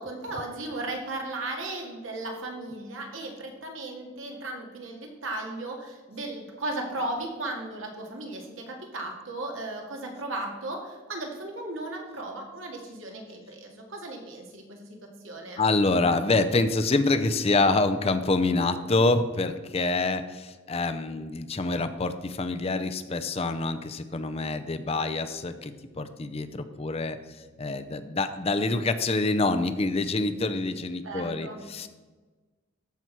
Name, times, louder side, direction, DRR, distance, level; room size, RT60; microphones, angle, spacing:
voice 1, 0.0-15.6 31.0-31.6, right 2 dB, 80° right, 1 dB, 2.0 m, -36 dB
voice 2, 15.6-27.2 27.6-31.9, left 3 dB, 30° left, 9 dB, 0.5 m, -26 dB
14.0 x 6.0 x 4.6 m, 1.3 s
head